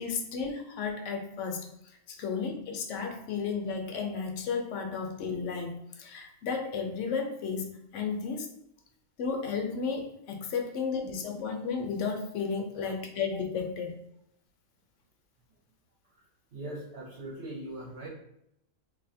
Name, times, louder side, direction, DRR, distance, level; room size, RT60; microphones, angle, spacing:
voice 1, 0.0-1.7 2.1-8.5 9.2-14.0, left 5 dB, 70° left, 3 dB, 1.0 m, -33 dB
voice 2, 16.5-18.1, right 1 dB, 60° right, -4 dB, 1.1 m, -41 dB
2.9 x 2.6 x 4.1 m, 0.78 s
omnidirectional pair, 1.4 m